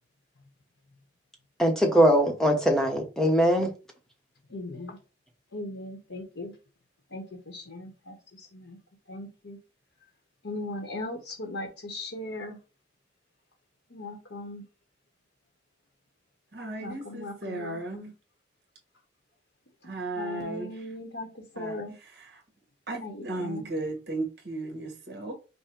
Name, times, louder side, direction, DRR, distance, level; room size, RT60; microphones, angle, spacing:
voice 1, 1.6-3.7, equal, 5° left, 1.0 m, -21 dB
voice 2, 4.5-5.0 5.5-6.5 7.1-8.1 8.5-8.8 9.1-9.6 10.4-12.6 13.9-14.6 16.8-18.1 20.2-21.3 21.6-21.9 23.0-23.1 23.4-23.6, left 2 dB, 75° left, 1.1 m, -38 dB
voice 3, 16.5-18.1 19.8-20.9 21.5-22.4 22.9-25.3, right 2 dB, 60° right, 1.4 m, -36 dB
5.4 x 2.2 x 4.5 m
head